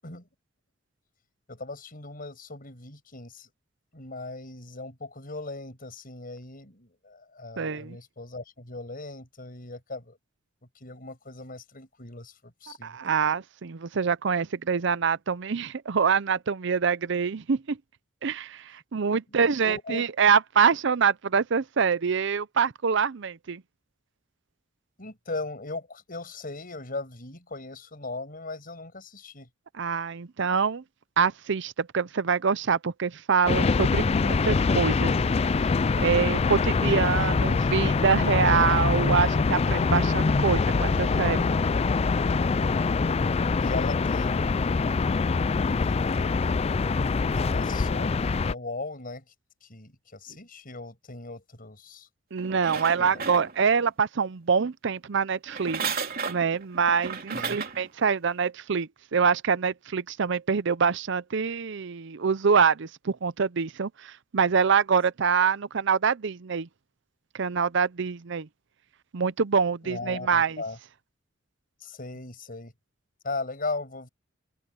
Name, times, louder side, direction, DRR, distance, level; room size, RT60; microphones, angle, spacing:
voice 1, 1.5-3.5 3.9-10.2 10.8-13.0 19.3-20.0 25.0-29.5 36.7-36.8 43.6-45.1 45.8-46.5 47.4-49.2 49.6-52.1 53.0-53.2 57.3-57.6 69.8-70.8 71.8-72.7 73.2-74.1, left 3 dB, 45° left, 6.9 m, -38 dB
voice 2, 7.6-8.0 12.8-17.8 18.2-23.6 29.8-30.8 31.2-35.2 35.5-35.7 36.0-41.5 52.3-55.8 56.3-66.7 67.3-68.5 69.1-70.6, right 6 dB, 65° right, 0.6 m, -25 dB
sound 1, 33.5-48.5, left 4 dB, 30° left, 0.4 m, -24 dB
sound 2, 52.4-53.9 55.5-57.9 58.4-58.5, right 5 dB, 50° right, 3.2 m, -34 dB
open air
head